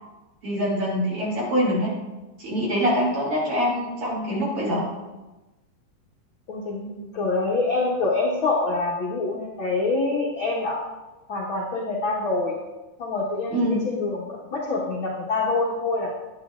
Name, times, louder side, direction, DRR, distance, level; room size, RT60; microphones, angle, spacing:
voice 1, 0.4-1.9 2.4-4.9 13.5-13.8, equal, 40° right, -4 dB, 3.3 m, -24 dB
voice 2, 6.5-10.8 11.3-12.6 13.0-16.1, left 3 dB, 75° left, -4 dB, 1.1 m, -26 dB
11.5 x 9.2 x 2.5 m, 1.1 s
omnidirectional pair, 4.3 m